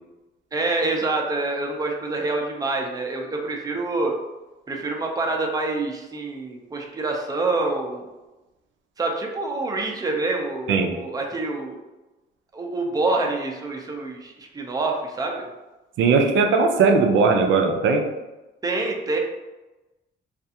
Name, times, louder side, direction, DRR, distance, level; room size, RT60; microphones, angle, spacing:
voice 1, 0.5-4.1 4.7-8.0 9.0-11.8 12.5-15.5 18.6-19.2, right 2 dB, 20° right, 1 dB, 0.5 m, -26 dB
voice 2, 16.0-18.0, right 4 dB, 75° right, 4 dB, 0.5 m, -18 dB
2.4 x 2.3 x 2.7 m, 1.1 s
cardioid pair, 90°, 20 cm